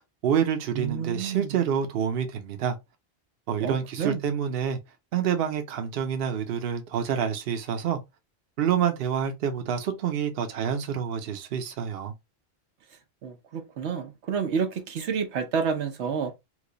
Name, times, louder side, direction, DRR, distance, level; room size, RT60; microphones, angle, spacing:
voice 1, 0.2-2.8 3.5-4.8 5.1-8.0 8.6-12.1, right 8 dB, 65° right, 0.9 m, -27 dB
voice 2, 0.7-1.5 3.6-4.2 13.2-16.3, right 6 dB, 90° right, 1.1 m, -29 dB
3.0 x 2.2 x 3.8 m
omnidirectional pair, 1.1 m